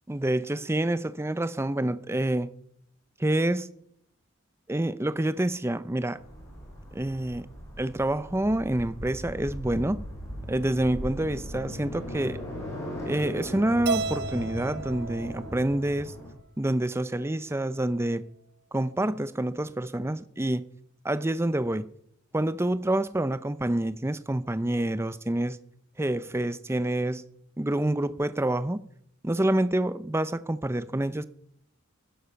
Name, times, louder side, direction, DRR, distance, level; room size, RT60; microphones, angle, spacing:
voice 1, 0.1-2.5 3.2-3.7 4.7-6.2 6.9-7.5 7.8-10.0 10.5-12.4 13.0-16.1 16.6-18.2 18.7-20.6 21.0-21.9 22.3-25.6 26.0-27.2 27.6-28.8 29.2-31.2, right 1 dB, 10° right, 0.6 m, -27 dB
sound 1, 6.2-16.3, equal, 15° left, 6.4 m, -38 dB
Keyboard (musical), 13.9-16.2, right 4 dB, 55° right, 0.7 m, -34 dB
18.5 x 10.5 x 6.9 m
head